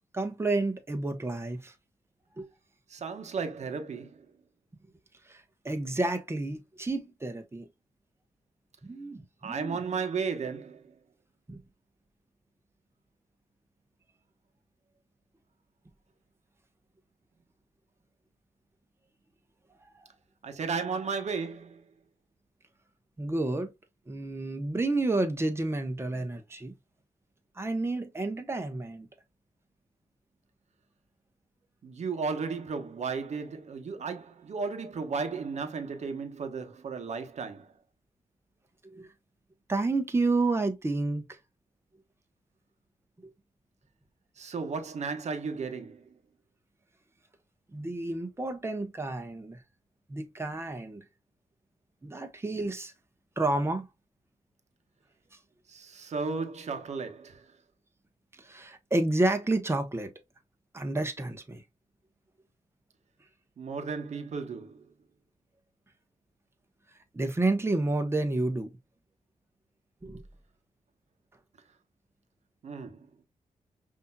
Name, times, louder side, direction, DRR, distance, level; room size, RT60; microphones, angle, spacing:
voice 1, 0.1-1.7 2.4-2.5 5.3-7.7 8.8-9.8 11.5-11.6 23.2-23.7 24.1-26.7 27.6-29.1 38.8-39.1 39.7-41.4 43.2-43.3 47.7-49.6 50.1-51.0 52.0-52.9 53.4-53.9 58.4-60.1 60.7-61.6 67.1-68.7 70.0-70.2, right 2 dB, 20° right, 1.0 m, -30 dB
voice 2, 2.9-4.3 9.4-10.9 20.4-21.9 31.8-37.7 44.4-46.1 55.7-57.5 63.6-64.9 72.6-73.1, right 5 dB, 60° right, 1.0 m, -34 dB
5.4 x 2.8 x 2.3 m
cardioid pair, 75°, 13 cm